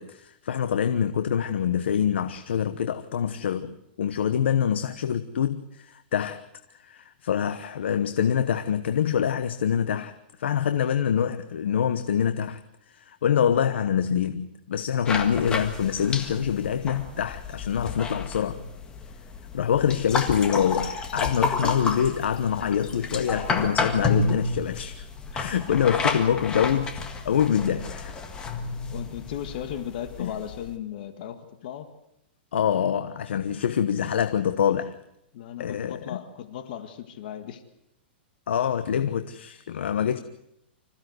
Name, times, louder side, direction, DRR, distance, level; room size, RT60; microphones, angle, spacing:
voice 1, 0.0-6.4 6.8-10.1 10.4-12.6 12.9-18.6 19.5-25.0 25.3-28.1 30.2-30.3 32.5-34.9 35.6-36.2 38.5-40.2, left 8 dB, 85° left, 1.1 m, -25 dB
sound 1, 15.1-30.7, left 4 dB, 15° left, 1.7 m, -31 dB
voice 2, 28.9-31.9 35.3-37.6, left 10 dB, 55° left, 1.8 m, -36 dB
26.0 x 15.5 x 8.0 m
hypercardioid pair, 160°, 6 cm